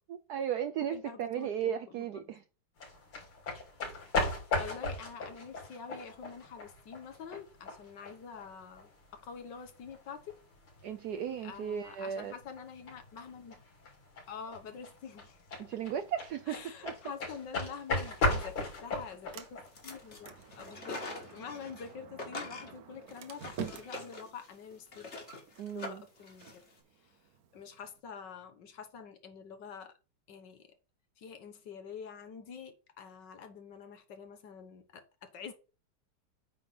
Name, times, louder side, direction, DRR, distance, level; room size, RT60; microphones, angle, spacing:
voice 1, 0.1-2.4 10.8-12.3 15.6-16.9 25.6-26.0, right 9 dB, 80° right, 0.8 m, -35 dB
voice 2, 0.9-2.3 4.6-10.3 11.4-13.6 14.3-15.4 16.5-19.5 19.8-25.1 25.7-26.6 27.0-27.2 27.5-30.0 30.3-30.7 31.2-35.5, left 6 dB, 60° left, 1.7 m, -47 dB
sound 1, 2.8-20.7, left 2 dB, 80° left, 3.9 m, -38 dB
Sliding door, 18.0-28.0, right 7 dB, 55° right, 1.1 m, -49 dB
sound 2, 19.7-20.2 20.5-21.9 22.2-26.7, left 2 dB, 35° left, 1.9 m, -44 dB
8.8 x 3.7 x 5.5 m
omnidirectional pair, 2.4 m